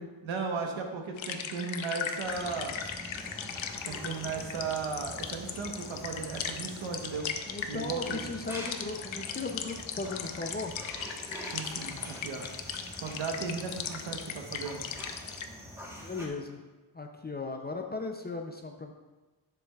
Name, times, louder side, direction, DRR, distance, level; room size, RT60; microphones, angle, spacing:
voice 1, 0.2-2.8 3.9-7.3 7.7-8.2 11.5-12.5 13.0-14.8, right 5 dB, 75° right, 3 dB, 1.2 m, -36 dB
sound 1, 1.2-15.5, left 7 dB, 70° left, 0.7 m, -39 dB
sound 2, 2.2-16.3, equal, 5° right, 1.2 m, -45 dB
voice 2, 7.5-10.7 16.0-16.6 16.9-18.9, left 3 dB, 20° left, 2 dB, 0.4 m, -37 dB
10.5 x 7.0 x 2.4 m, 1.2 s
wide cardioid pair, 160°, 48 cm